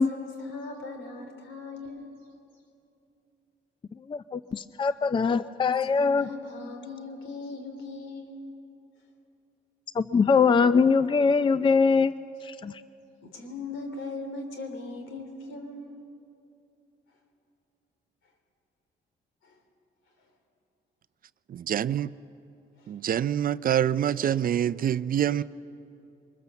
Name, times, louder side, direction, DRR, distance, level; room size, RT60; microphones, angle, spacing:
voice 1, 0.0-2.1 5.8-8.4 13.2-15.9 19.4-19.6 22.8-22.9 25.4-25.5, left 3 dB, 80° left, 3.4 m, -39 dB
voice 2, 4.1-6.3 10.0-12.1 12.5-12.7, left 5 dB, 25° left, 0.5 m, -22 dB
voice 3, 21.5-22.1 22.9-25.4, right 10 dB, 45° right, 0.4 m, -26 dB
23.0 x 21.0 x 7.1 m
cardioid pair, 90°, 20 cm